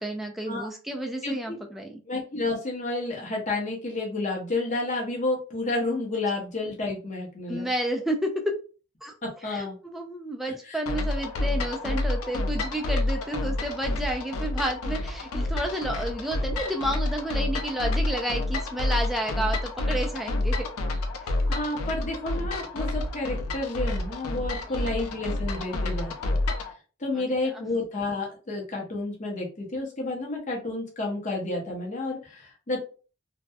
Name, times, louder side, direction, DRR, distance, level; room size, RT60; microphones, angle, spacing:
voice 1, 0.0-2.0 7.5-8.3 9.0-9.1 9.4-20.7 21.2-21.3 24.7-24.9 27.1-27.7, right 1 dB, ahead, 1 dB, 0.3 m, -31 dB
voice 2, 1.2-1.6 2.1-7.7 9.2-9.8 10.5-10.8 21.5-26.4 27.0-32.8, left 2 dB, 35° left, 0 dB, 0.7 m, -30 dB
sound 1, 10.9-26.7, left 2 dB, 85° left, 0.4 m, -29 dB
2.6 x 2.1 x 2.2 m, 0.37 s
head